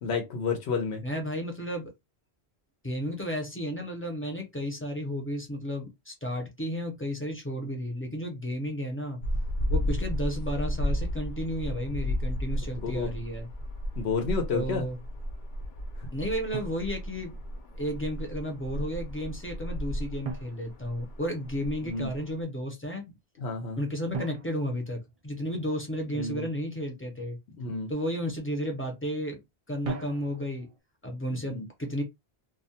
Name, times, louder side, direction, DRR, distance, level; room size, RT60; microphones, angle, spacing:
voice 1, 0.0-1.0 12.8-13.1 14.0-14.8 16.0-16.1 21.8-22.1 23.4-23.8 26.1-26.5 27.6-27.9 31.4-31.7, left 5 dB, 90° left, 0.9 m, -30 dB
voice 2, 1.0-1.9 2.8-9.2 9.7-13.5 14.5-15.0 16.1-17.4 17.8-23.1 23.8-27.4 27.9-29.4 29.7-30.7 31.0-32.0, equal, 15° left, 0.5 m, -33 dB
sound 1, 9.2-22.4, equal, 60° left, 0.6 m, -33 dB
Drum, 16.5-17.7 20.2-21.6 24.1-25.8 29.8-30.8, right 3 dB, 55° right, 0.4 m, -40 dB
2.3 x 2.1 x 2.7 m
omnidirectional pair, 1.1 m